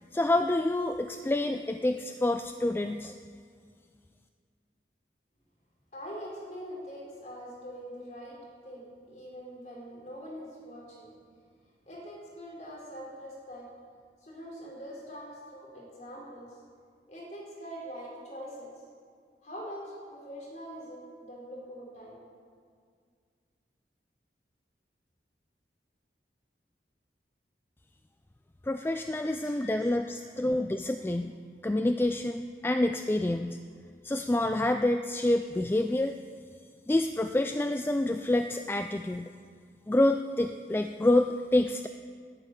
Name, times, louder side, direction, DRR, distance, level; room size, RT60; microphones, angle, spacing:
voice 1, 0.1-3.1 28.7-31.3 31.6-33.6 34.0-36.2 36.9-39.3 39.9-41.9, left 1 dB, 10° left, 7 dB, 0.3 m, -27 dB
voice 2, 5.9-8.4 8.6-11.1 11.9-13.7 14.2-16.5 17.1-18.7 19.4-22.2 29.1-30.3, equal, 40° left, -4 dB, 4.3 m, -43 dB
11.0 x 9.7 x 9.2 m, 2.1 s
head